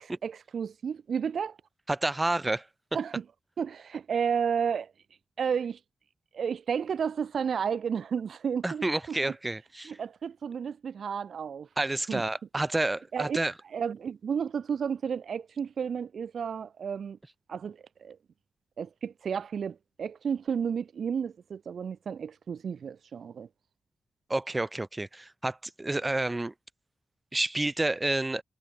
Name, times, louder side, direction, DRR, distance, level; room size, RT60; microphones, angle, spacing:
voice 1, 0.0-1.6 2.9-3.2 3.6-4.9 5.4-5.8 6.3-9.2 9.9-11.7 12.1-12.2 13.1-13.4 13.7-17.2 17.5-18.2 18.8-23.5, right 7 dB, 75° right, 3.7 m, -32 dB
voice 2, 1.9-2.7 8.6-10.0 11.8-13.5 24.3-26.5 27.3-28.4, right 2 dB, 20° right, 7.8 m, -29 dB
cardioid pair, 80°, 0 cm